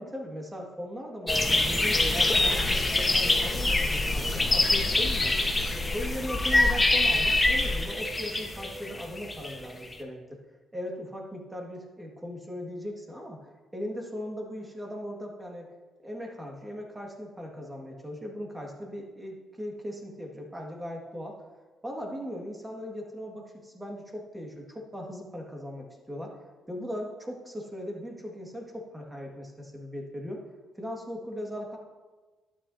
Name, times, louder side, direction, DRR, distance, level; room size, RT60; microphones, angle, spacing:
voice 1, 0.0-5.5 5.9-10.4 10.7-15.7 16.0-21.4 21.8-26.4 26.7-30.5 30.8-31.8, equal, 10° right, 0 dB, 1.9 m, -38 dB
sound 1, 1.3-9.9, left 2 dB, 15° left, 1.1 m, -25 dB
sound 2, 2.0-7.8, left 3 dB, 35° left, 0.9 m, -33 dB
12.0 x 8.8 x 2.8 m, 1.3 s
cardioid pair, 90°, 0 cm